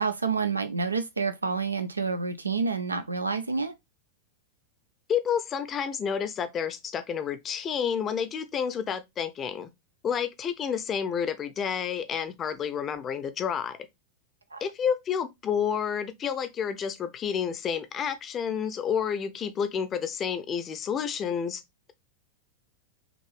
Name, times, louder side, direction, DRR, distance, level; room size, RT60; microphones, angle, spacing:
voice 1, 0.0-3.7 14.5-14.6, right 4 dB, 80° right, 0.4 m, -28 dB
voice 2, 5.1-9.7 10.0-13.8 14.6-21.6, left 7 dB, 25° left, 0.6 m, -30 dB
5.9 x 2.6 x 3.3 m
figure-of-eight pair, 90°, 0 cm